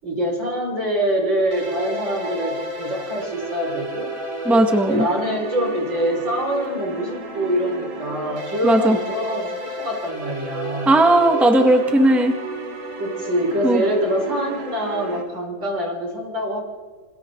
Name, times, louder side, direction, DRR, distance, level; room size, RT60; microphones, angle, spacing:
voice 1, 0.0-4.1 4.8-10.9 13.0-16.6, equal, 70° right, -1 dB, 6.4 m, -25 dB
sound 1, 1.5-15.2, right 2 dB, 90° right, 3.8 m, -32 dB
voice 2, 4.4-5.1 8.6-9.0 10.8-12.4 13.6-13.8, right 1 dB, ahead, 4 dB, 1.7 m, -16 dB
28.5 x 27.5 x 4.0 m, 1.5 s
omnidirectional pair, 2.1 m